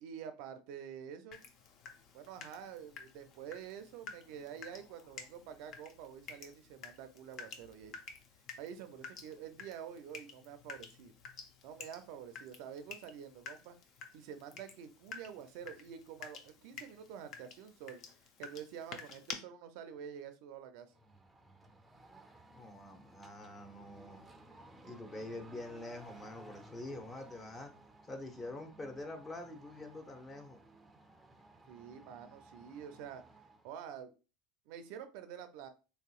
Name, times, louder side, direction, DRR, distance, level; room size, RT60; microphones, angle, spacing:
voice 1, 0.0-1.4 2.1-8.0 8.6-11.1 11.6-13.8 14.1-18.0 18.4-20.9 31.7-33.2 33.6-34.1 34.7-35.7, right 8 dB, 65° right, 0.4 m, -48 dB
Water tap faucet / Drip, 1.3-19.3, left 5 dB, 50° left, 0.6 m, -51 dB
sound 1, 20.9-33.7, right 2 dB, 10° right, 0.5 m, -58 dB
voice 2, 22.5-24.3 24.8-27.7 28.1-30.6, left 2 dB, 25° left, 0.9 m, -46 dB
3.3 x 2.8 x 2.4 m
hypercardioid pair, 95°, 0 cm